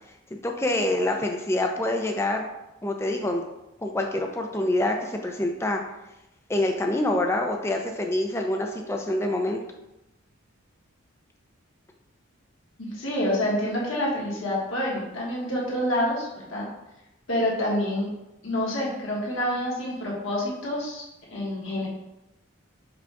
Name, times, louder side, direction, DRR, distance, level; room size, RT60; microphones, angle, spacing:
voice 1, 0.3-2.5 2.8-3.4 3.8-5.8 6.5-9.6, left 1 dB, 10° left, 3 dB, 0.4 m, -26 dB
voice 2, 12.8-16.6 17.3-18.1 18.4-21.0 21.3-21.9, left 1 dB, 70° left, -4 dB, 1.4 m, -27 dB
4.9 x 2.4 x 4.6 m, 0.93 s
head